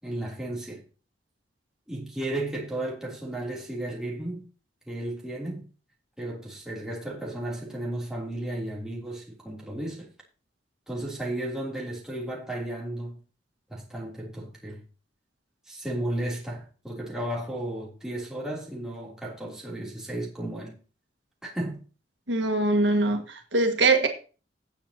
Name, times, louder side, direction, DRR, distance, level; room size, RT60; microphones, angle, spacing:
voice 1, 0.0-0.8 1.9-4.4 4.9-5.6 6.2-10.1 10.9-13.2 13.7-14.8 15.7-20.8 21.4-21.8, right 1 dB, 5° right, 3.4 m, -34 dB
voice 2, 22.3-24.1, right 2 dB, 85° right, 1.8 m, -23 dB
17.5 x 7.5 x 3.0 m
head